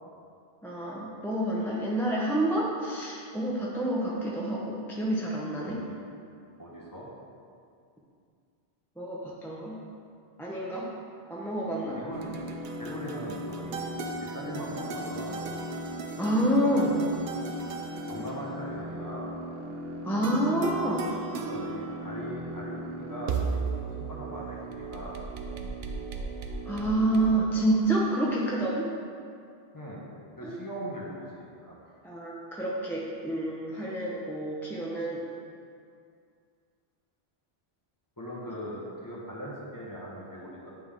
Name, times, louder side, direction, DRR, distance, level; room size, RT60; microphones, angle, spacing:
voice 1, 0.6-5.8 9.0-9.8 10.4-10.9 11.3-12.0 12.2-12.3 16.2-17.0 20.0-21.1 26.7-28.9 30.4-30.6 32.0-35.2, right 1 dB, 5° left, -5 dB, 0.5 m, -28 dB
voice 2, 5.6-6.0 6.6-7.1 11.9-12.2 12.8-13.9 14.2-15.4 17.8-19.3 21.5-25.1 29.7-30.1 30.4-31.8 38.2-40.7, equal, 20° left, -5 dB, 1.0 m, -40 dB
sound 1, 12.1-27.4, right 3 dB, 70° right, 0.8 m, -36 dB
9.3 x 3.4 x 3.6 m, 2.3 s
omnidirectional pair, 1.1 m